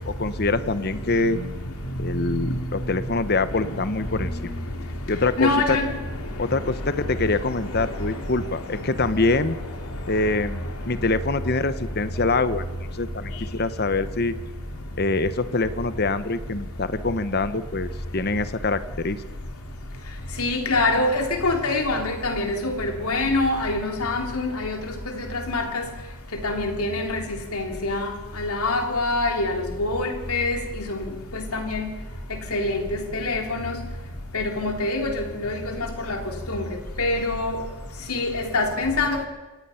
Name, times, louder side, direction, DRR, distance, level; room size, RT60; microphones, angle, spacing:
voice 1, 0.1-1.4 2.0-4.5 5.1-5.8 6.4-9.6 10.1-14.3 15.0-19.2, left 3 dB, 45° left, 12 dB, 0.9 m, -25 dB
voice 2, 5.4-5.9 20.4-25.8 26.4-28.1 28.4-31.9 32.3-33.8 34.3-36.2 36.5-36.7 37.0-37.6 38.1-39.3, left 2 dB, 80° left, 3 dB, 3.3 m, -25 dB
27.5 x 17.5 x 5.8 m, 1.2 s
head